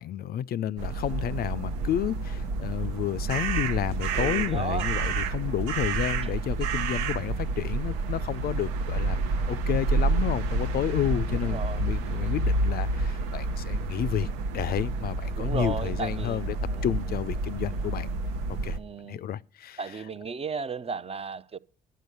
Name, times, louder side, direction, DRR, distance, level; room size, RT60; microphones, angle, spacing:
voice 1, 0.0-16.5 16.8-18.1 18.6-18.8 19.0-20.0, left 11 dB, 50° left, 0.4 m, -31 dB
sound 1, 0.8-18.8, right 3 dB, 80° right, 0.8 m, -29 dB
voice 2, 4.1-4.9 11.3-11.8 15.4-17.0 18.8-19.2 19.8-21.6, right 5 dB, 30° right, 0.5 m, -35 dB
11.0 x 7.5 x 6.7 m
hypercardioid pair, 50°, 20 cm